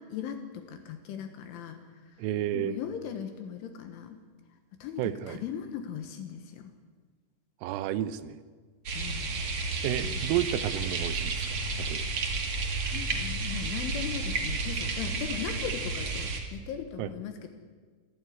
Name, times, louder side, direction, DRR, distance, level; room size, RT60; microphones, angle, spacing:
voice 1, 0.1-1.8 2.5-4.2 4.8-6.7 9.0-9.3 10.0-10.2 12.8-17.5, left 8 dB, 75° left, 7 dB, 3.6 m, -38 dB
voice 2, 2.2-2.8 5.0-5.4 7.6-8.4 9.8-12.1 17.0-17.1, right 12 dB, 80° right, 13 dB, 3.3 m, -31 dB
sound 1, 8.8-16.4, right 3 dB, 55° right, 1.5 m, -32 dB
27.5 x 12.0 x 9.5 m, 1.5 s
omnidirectional pair, 5.9 m